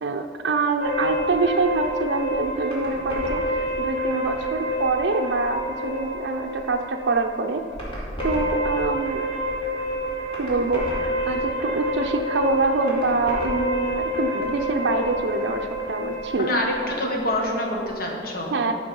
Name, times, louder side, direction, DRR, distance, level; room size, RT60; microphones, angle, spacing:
voice 1, 0.0-7.6 8.2-9.3 10.4-16.5 18.5-18.8, right 3 dB, 80° right, 3 dB, 0.5 m, -25 dB
sound 1, 0.8-17.9, left 1 dB, 30° left, 2.5 m, -28 dB
voice 2, 16.3-18.5, left 1 dB, 55° left, 0 dB, 1.5 m, -26 dB
10.5 x 6.0 x 5.3 m, 2.4 s
head